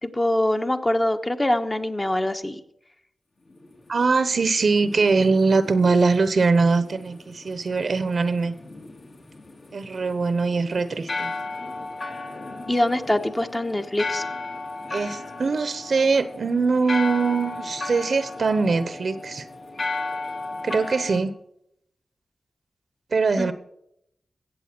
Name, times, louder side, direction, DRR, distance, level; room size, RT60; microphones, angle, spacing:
voice 1, 0.0-2.6 12.7-14.2 23.4-23.5, left 1 dB, 20° left, 6 dB, 1.3 m, -24 dB
sound 1, 3.5-21.2, left 3 dB, 60° left, 3.0 m, -35 dB
voice 2, 3.9-8.5 9.7-11.3 14.9-19.5 20.6-21.3 23.1-23.5, right 4 dB, 65° right, 12 dB, 1.1 m, -22 dB
16.0 x 7.8 x 6.1 m, 0.75 s
cardioid pair, 55°, 0 cm